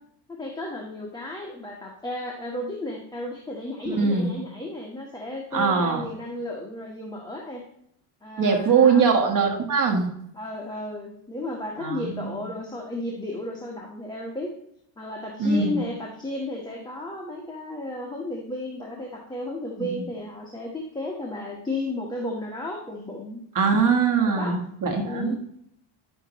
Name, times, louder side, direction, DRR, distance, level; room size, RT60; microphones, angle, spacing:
voice 1, 0.3-7.6 8.2-9.0 10.3-14.5 15.0-23.4 24.3-24.6 25.0-25.4, left 1 dB, 10° left, -1 dB, 1.2 m, -33 dB
voice 2, 3.9-4.3 5.5-6.0 8.4-10.1 11.8-12.4 15.4-15.8 19.8-20.0 23.5-25.4, right 5 dB, 40° right, 3 dB, 1.5 m, -22 dB
10.5 x 6.6 x 3.0 m, 0.73 s
cardioid pair, 120°, 48 cm